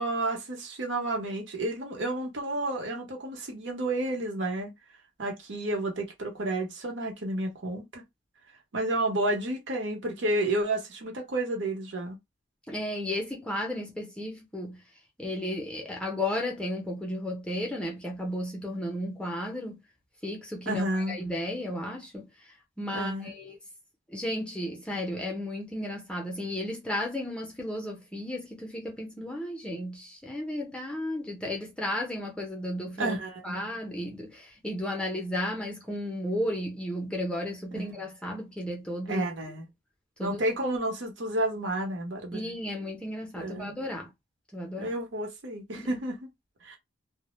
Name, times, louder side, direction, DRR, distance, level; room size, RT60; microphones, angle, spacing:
voice 1, 0.0-4.7 5.2-8.0 8.7-12.2 20.7-21.2 22.9-23.3 33.0-33.6 37.7-38.0 39.1-39.7 40.2-42.4 43.4-43.7 44.8-46.2 46.6-46.8, right 1 dB, 70° right, 0.8 m, -31 dB
voice 2, 12.7-14.8 15.2-19.8 20.2-22.3 22.8-23.6 24.1-33.2 33.4-39.2 40.2-40.4 42.3-44.1 44.5-44.9 45.8-46.0, left 1 dB, 5° left, 0.5 m, -34 dB
2.1 x 2.0 x 3.0 m
head